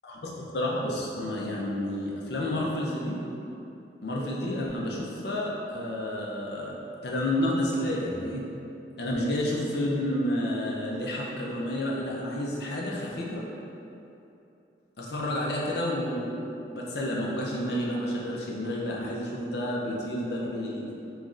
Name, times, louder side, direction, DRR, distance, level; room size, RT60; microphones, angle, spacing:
voice 1, 0.0-3.2 4.0-6.8 7.0-8.4 9.0-13.4 15.0-20.9, left 1 dB, 70° left, -3 dB, 0.6 m, -30 dB
3.0 x 2.5 x 3.7 m, 2.8 s
head